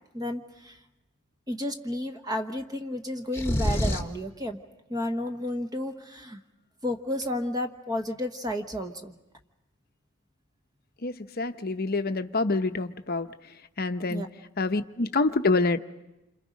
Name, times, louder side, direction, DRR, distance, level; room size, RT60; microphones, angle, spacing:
voice 1, 0.1-0.8 1.5-4.6 4.9-6.4 6.8-9.1 14.1-14.3, left 1 dB, 15° right, 6 dB, 1.2 m, -32 dB
sound 1, 3.3-4.2, left 1 dB, 10° left, 1.4 m, -26 dB
voice 2, 11.0-13.3 13.8-14.2 14.6-15.8, left 3 dB, 45° left, 9 dB, 0.8 m, -26 dB
28.0 x 26.5 x 5.2 m, 0.96 s
head